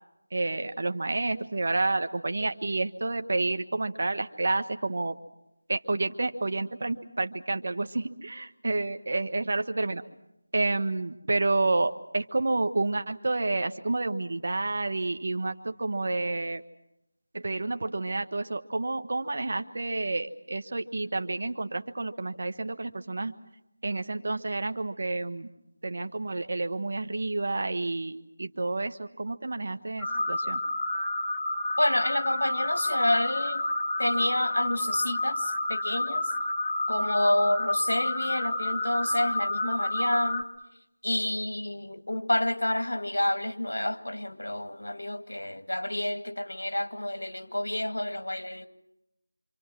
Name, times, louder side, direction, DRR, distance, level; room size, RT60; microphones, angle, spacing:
voice 1, 0.3-5.2 5.7-10.0 10.5-16.6 17.3-23.3 23.8-25.5 25.8-30.6, right 2 dB, 50° right, 8 dB, 1.5 m, -29 dB
sound 1, 30.0-40.4, left 1 dB, 10° left, 1.5 m, -29 dB
voice 2, 31.8-33.6 34.0-36.3 36.9-40.5 41.0-48.7, left 1 dB, 85° left, 8 dB, 2.0 m, -29 dB
27.0 x 26.0 x 6.1 m, 0.89 s
figure-of-eight pair, 170°, 0 cm